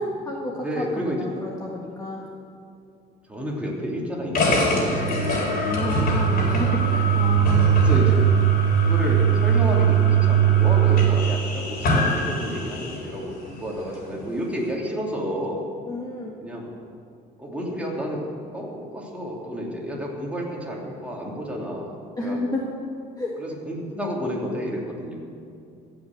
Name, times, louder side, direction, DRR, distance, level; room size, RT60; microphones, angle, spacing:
voice 1, 0.0-2.3 5.7-7.7 15.9-16.3 22.2-22.6 23.2-23.3, left 2 dB, 20° left, -2 dB, 1.5 m, -31 dB
voice 2, 0.6-1.2 3.3-5.7 7.7-8.3 8.8-15.6 16.4-16.6 17.4-22.4 23.4-25.1, equal, 5° right, -3 dB, 3.0 m, -31 dB
sound 1, 4.3-13.1, right 6 dB, 60° left, 3.7 m, -20 dB
16.0 x 6.1 x 7.8 m, 2.5 s
cardioid pair, 110°, 17 cm